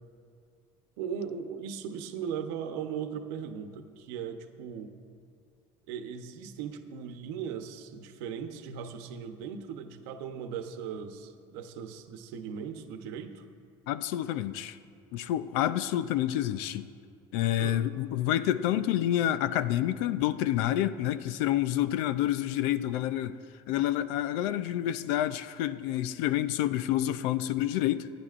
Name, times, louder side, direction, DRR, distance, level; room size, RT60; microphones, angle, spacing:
voice 1, 1.0-5.0 5.9-13.4 17.6-17.8, right 7 dB, 85° right, 7 dB, 0.9 m, -38 dB
voice 2, 13.9-14.8 15.1-16.9 17.3-23.4 23.7-28.1, left 12 dB, 90° left, 14 dB, 0.5 m, -28 dB
27.0 x 10.0 x 2.5 m, 2.3 s
cardioid pair, 170°, 12 cm